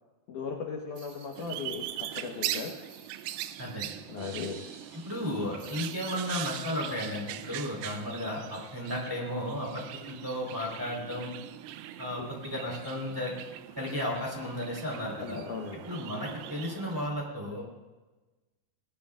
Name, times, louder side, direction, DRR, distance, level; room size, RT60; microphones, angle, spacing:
voice 1, 0.3-2.7 4.1-4.5 12.2-12.3 15.2-15.8, left 5 dB, 65° left, 0 dB, 2.1 m, -37 dB
sound 1, 0.9-4.2 4.5-4.6 5.6-8.3 8.7-8.8 10.9-11.1, right 4 dB, 45° right, 3.5 m, -55 dB
sound 2, 1.4-17.1, right 13 dB, 85° right, 2.8 m, -41 dB
voice 2, 3.6-4.0 4.9-11.3 12.0-13.4 13.8-15.4 15.9-17.6, left 1 dB, 5° right, -2 dB, 3.4 m, -34 dB
sound 3, 4.2-6.9, right 5 dB, 65° right, 2.7 m, -52 dB
24.0 x 18.0 x 2.5 m, 1.2 s
omnidirectional pair, 5.1 m